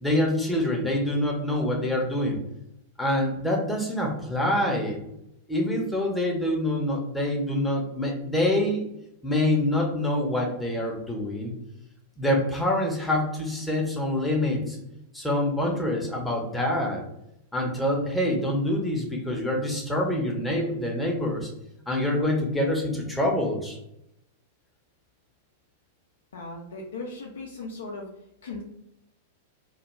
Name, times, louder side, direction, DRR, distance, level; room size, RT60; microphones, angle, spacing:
voice 1, 0.0-2.4 3.0-5.0 5.5-8.9 9.2-11.5 12.2-14.8 15.1-17.0 17.5-21.5 21.9-23.8, left 1 dB, 5° left, -1 dB, 0.6 m, -26 dB
voice 2, 26.3-28.1 28.4-28.6, left 3 dB, 65° left, -1 dB, 0.4 m, -37 dB
2.2 x 2.2 x 3.0 m, 0.80 s
figure-of-eight pair, 95°, 0 cm